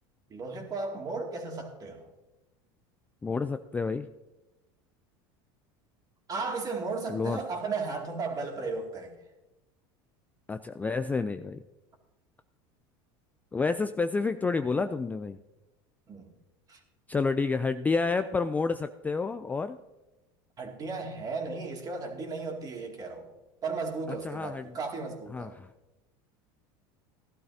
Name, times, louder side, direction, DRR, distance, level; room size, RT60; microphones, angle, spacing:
voice 1, 0.3-2.1 6.3-9.1 16.1-16.3 16.7-16.8 20.6-23.3 23.6-25.5, right 4 dB, 30° right, 2 dB, 2.4 m, -35 dB
voice 2, 3.2-4.1 7.1-7.4 10.5-11.6 13.5-15.4 17.1-19.8 24.2-24.7 25.3-25.7, left 4 dB, 15° left, 10 dB, 0.4 m, -29 dB
16.0 x 11.5 x 2.7 m, 1.0 s
supercardioid pair, 110°, 12 cm